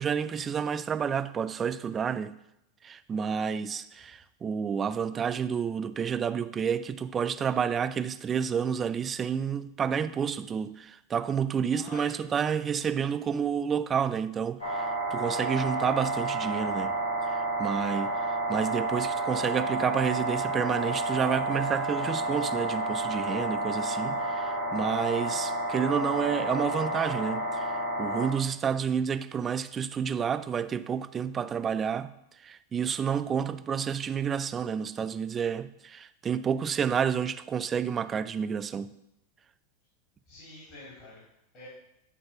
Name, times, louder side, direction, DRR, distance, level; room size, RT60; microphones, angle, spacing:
voice 1, 0.0-2.3 2.8-17.0 17.3-32.1 32.4-38.9, right 7 dB, 25° right, 0.4 m, -30 dB
voice 2, 11.7-12.2 33.4-33.5 40.3-41.2 41.5-41.7, left 2 dB, 45° left, 3.7 m, -47 dB
sound 1, 14.6-28.3, right 2 dB, 90° left, 2.1 m, -30 dB
10.0 x 3.7 x 5.9 m
hypercardioid pair, 95°, 0 cm